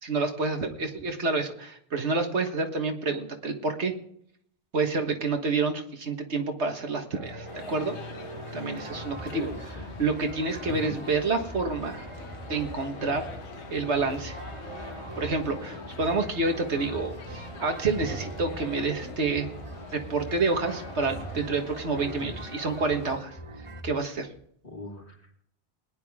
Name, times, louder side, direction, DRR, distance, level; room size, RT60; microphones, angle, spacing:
voice 1, 0.0-3.9 4.7-7.9 8.5-9.5 10.0-12.0 12.5-13.3 13.7-14.4 15.2-19.5 19.9-23.4 23.8-24.3, right 3 dB, 85° right, 4 dB, 1.8 m, -28 dB
sound 1, 7.1-23.8, right 3 dB, 30° right, 0.9 m, -44 dB
sound 2, 7.5-23.2, left 5 dB, 85° left, 1.3 m, -45 dB
sound 3, 8.8-24.5, right 1 dB, 15° left, 2.3 m, -45 dB
voice 2, 9.3-10.0 10.7-11.0 15.7-16.2 22.2-22.3 24.6-25.3, left 1 dB, 50° left, -2 dB, 3.1 m, -41 dB
20.5 x 10.0 x 3.6 m, 0.66 s
omnidirectional pair, 1.1 m